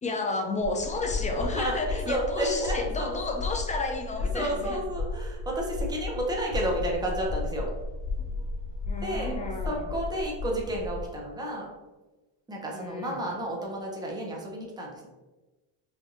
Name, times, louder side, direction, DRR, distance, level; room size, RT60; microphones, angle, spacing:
voice 1, 0.0-4.8 8.9-9.8 12.7-13.2, left 3 dB, 15° left, 3 dB, 0.3 m, -32 dB
sound 1, 0.6-11.1, left 3 dB, 55° left, 1.5 m, -34 dB
voice 2, 1.4-3.4 4.2-7.7 9.0-9.4 9.7-11.7 12.5-15.1, right 1 dB, 10° right, -2 dB, 0.8 m, -31 dB
4.9 x 2.6 x 2.6 m, 1.1 s
cardioid pair, 120°, 50 cm